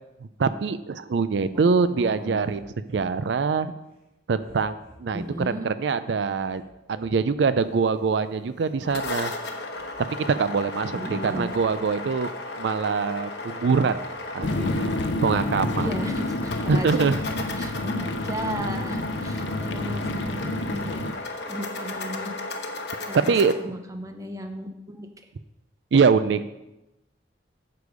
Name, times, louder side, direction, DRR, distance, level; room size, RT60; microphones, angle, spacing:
voice 1, 0.4-3.7 4.3-6.6 6.9-9.3 10.2-12.3 12.6-14.0 14.3-14.9 15.2-15.9 16.7-17.2 23.3-23.5 25.9-26.4, right 5 dB, 80° right, 13 dB, 0.4 m, -24 dB
sound 1, 1.3-2.0 2.4-3.4 3.8-4.0 4.4-5.3 5.9-6.0 6.5-7.6 8.2-8.3 8.6-9.1 9.3-10.0 10.4-10.7 10.9-12.8 13.1-14.7 15.4-15.6, equal, 55° right, 2.4 m, -51 dB
voice 2, 1.5-2.5 5.1-5.7 10.9-11.5 15.7-17.2 17.5-22.4 23.1-25.1, equal, 20° right, 6 dB, 0.7 m, -35 dB
sound 2, 8.6-23.5, left 2 dB, 70° left, 1.0 m, -34 dB
sound 3, 14.4-21.1, left 2 dB, 85° left, 0.6 m, -29 dB
8.2 x 6.9 x 5.0 m, 0.94 s
head